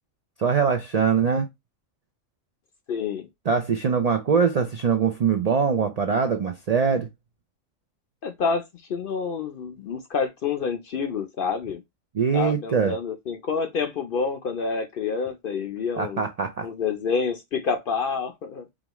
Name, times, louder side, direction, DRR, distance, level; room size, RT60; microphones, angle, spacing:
voice 1, 0.4-1.5 3.5-7.1 12.1-12.9 16.0-16.7, right 6 dB, 85° right, 0.3 m, -22 dB
voice 2, 2.9-3.3 8.2-8.6 8.9-11.8 12.3-16.2 16.6-18.7, left 5 dB, 60° left, 0.6 m, -28 dB
5.1 x 2.3 x 2.9 m
omnidirectional pair, 1.4 m